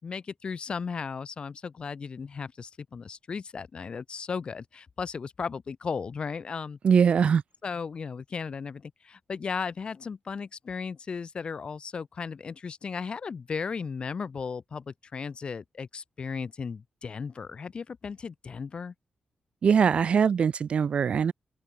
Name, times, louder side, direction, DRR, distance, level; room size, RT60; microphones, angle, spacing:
voice 1, 0.0-6.8 7.6-18.9, left 5 dB, 45° left, 7.9 m, -36 dB
voice 2, 6.8-7.4 19.6-21.3, right 7 dB, 55° right, 0.7 m, -22 dB
open air
wide cardioid pair, 135°, 2 cm